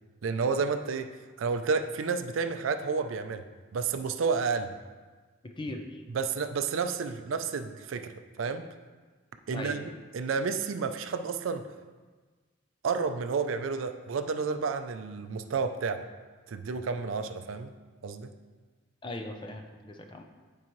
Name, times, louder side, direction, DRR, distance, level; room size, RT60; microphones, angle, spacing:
voice 1, 0.2-1.1 1.4-3.5 3.7-4.7 6.1-8.7 9.5-11.7 12.8-16.1 16.5-17.7 18.0-18.3, right 5 dB, 85° right, 9 dB, 0.4 m, -31 dB
voice 2, 5.6-6.0 9.5-9.8 19.0-20.2, left 2 dB, 25° left, 4 dB, 0.5 m, -39 dB
9.8 x 4.7 x 3.1 m, 1.4 s
head